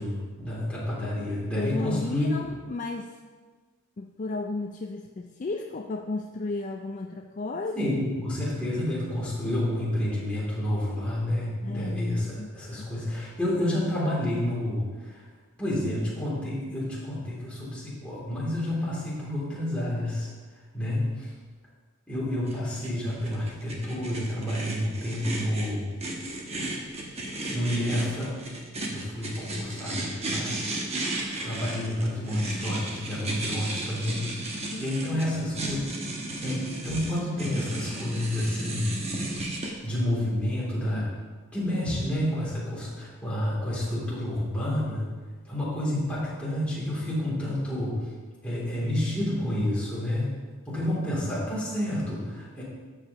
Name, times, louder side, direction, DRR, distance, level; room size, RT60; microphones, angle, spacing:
voice 1, 0.0-2.3 7.8-15.3 15.6-20.3 20.7-21.3 22.1-25.9 27.5-28.4 28.9-30.6 31.4-34.4 34.8-35.9 36.4-38.9 39.8-41.1 41.5-45.0 45.5-48.1 48.4-50.3 50.7-52.6, left 1 dB, 5° left, -8 dB, 2.8 m, -29 dB
voice 2, 1.6-3.2 4.0-7.8 11.6-12.9 34.7-36.0 40.9-41.1, left 3 dB, 35° left, 3 dB, 0.4 m, -34 dB
sound 1, 22.5-39.7, right 2 dB, 30° right, 1.1 m, -34 dB
12.0 x 7.6 x 3.0 m, 1.5 s
head